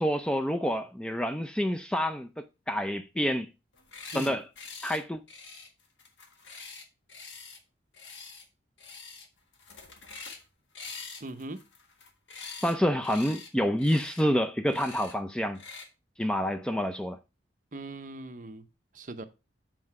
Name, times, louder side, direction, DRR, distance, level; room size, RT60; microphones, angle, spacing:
voice 1, 0.0-3.5 4.1-4.5 4.8-5.2 12.6-15.6 16.2-17.2, equal, 5° left, 0.3 m, -28 dB
sound 1, 3.7-4.3 4.6-5.0 5.3-7.6 7.9-8.4 8.8-9.3 9.5-10.4 10.7-12.7 13.0-13.5 13.8-14.2 14.7-15.1 15.5-15.9, left 4 dB, 80° left, 1.5 m, -45 dB
voice 2, 11.2-11.6 17.7-18.6 18.9-19.2, right 2 dB, 45° right, 0.7 m, -40 dB
7.7 x 4.8 x 4.6 m
head